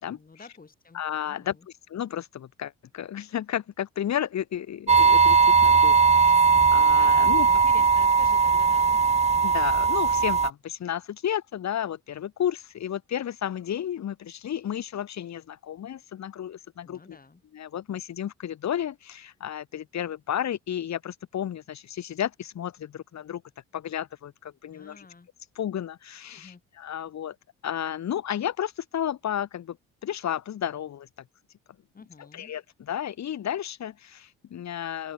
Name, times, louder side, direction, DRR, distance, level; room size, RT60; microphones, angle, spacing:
voice 1, 0.1-1.0 1.3-1.7 7.0-9.0 16.8-17.4 24.7-25.3 26.3-26.6 31.9-32.5, left 4 dB, 30° left, 7.6 m, -49 dB
voice 2, 0.9-1.6 1.9-7.7 9.4-17.2 17.5-23.4 23.7-25.1 25.6-27.4 27.6-29.8 30.0-31.1 32.3-35.1, left 10 dB, 65° left, 4.2 m, -32 dB
sound 1, 4.9-10.5, right 5 dB, 20° right, 0.6 m, -19 dB
open air
cardioid pair, 90°, 30 cm